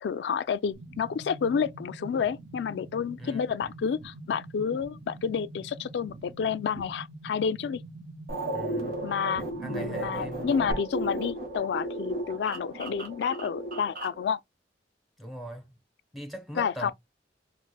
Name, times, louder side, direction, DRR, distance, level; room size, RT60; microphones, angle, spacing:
voice 1, 0.0-7.8 9.0-14.4 16.6-16.9, left 6 dB, 65° left, 0.3 m, -30 dB
sound 1, 0.7-10.7, right 2 dB, 80° right, 0.7 m, -44 dB
sound 2, 8.3-14.2, right 1 dB, 50° right, 1.3 m, -35 dB
voice 2, 8.5-8.9 9.6-10.6 15.2-15.7 16.1-16.9, right 1 dB, ahead, 0.7 m, -40 dB
4.5 x 2.1 x 2.2 m
head